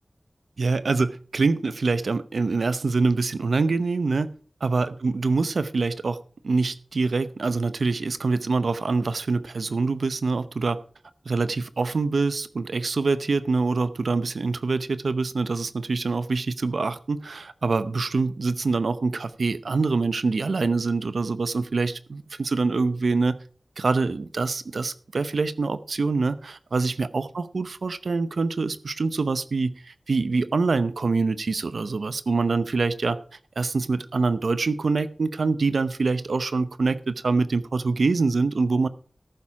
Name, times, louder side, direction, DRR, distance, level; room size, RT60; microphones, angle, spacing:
voice 1, 0.6-4.3 4.6-6.2 6.4-10.8 11.3-23.4 23.8-33.2 33.6-38.9, right 3 dB, 90° right, 13 dB, 0.7 m, -25 dB
14.0 x 7.4 x 4.8 m, 0.41 s
wide cardioid pair, 60°, 0 cm